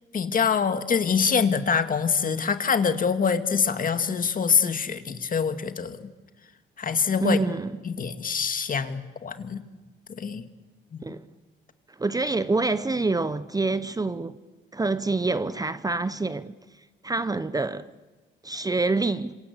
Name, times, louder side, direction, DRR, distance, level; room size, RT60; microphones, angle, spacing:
voice 1, 0.1-6.0 6.8-7.4 7.9-9.6 10.1-10.4 10.9-11.0, left 6 dB, 45° left, 2.1 m, -25 dB
voice 2, 7.2-7.7 11.0-11.3 12.0-14.4 14.7-16.5 17.0-17.9 18.4-19.4, right 3 dB, 20° right, 0.9 m, -26 dB
27.0 x 26.0 x 8.3 m
cardioid pair, 90°, 20 cm